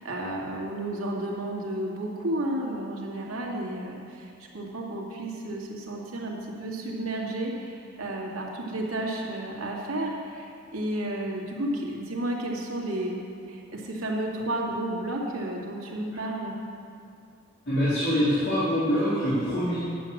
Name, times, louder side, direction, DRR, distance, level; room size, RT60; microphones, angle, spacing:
voice 1, 0.0-16.5, right 1 dB, 85° right, -2 dB, 2.2 m, -32 dB
voice 2, 17.7-19.8, equal, 55° left, -13 dB, 3.5 m, -24 dB
11.0 x 8.5 x 7.2 m, 2.5 s
head